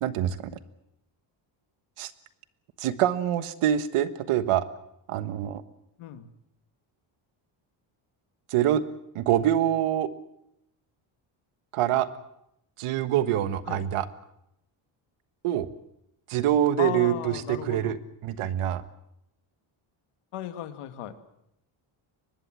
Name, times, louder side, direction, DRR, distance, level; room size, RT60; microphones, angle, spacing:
voice 1, 0.0-0.5 2.0-2.1 2.8-4.6 5.1-5.6 8.5-8.8 9.1-10.1 11.7-12.1 12.8-14.1 15.4-15.7 16.3-18.8, right 11 dB, 85° right, 13 dB, 1.6 m, -25 dB
voice 2, 6.0-6.3 13.7-13.8 16.8-17.9 20.3-21.2, left 12 dB, 90° left, 10 dB, 2.1 m, -35 dB
23.5 x 20.5 x 7.6 m, 0.80 s
cardioid pair, 165°, 50 cm